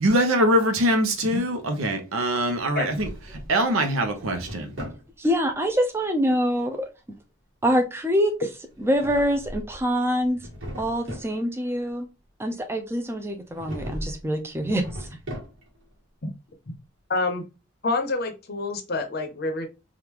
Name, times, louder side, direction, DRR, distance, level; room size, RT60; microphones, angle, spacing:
voice 1, 0.0-3.1 3.5-4.7, right 1 dB, 85° right, 0.8 m, -23 dB
Drawer open or close, 2.6-3.6 4.0-5.1 8.7-9.8 10.2-11.3 13.5-14.2 14.6-15.8, equal, 65° right, 1.5 m, -38 dB
voice 2, 5.2-6.9 7.6-8.4 8.8-10.4 10.8-12.1 12.4-15.1, equal, 10° right, 0.4 m, -25 dB
voice 3, 17.1-17.4 17.8-19.7, left 3 dB, 50° left, 0.6 m, -27 dB
3.6 x 2.4 x 2.9 m
head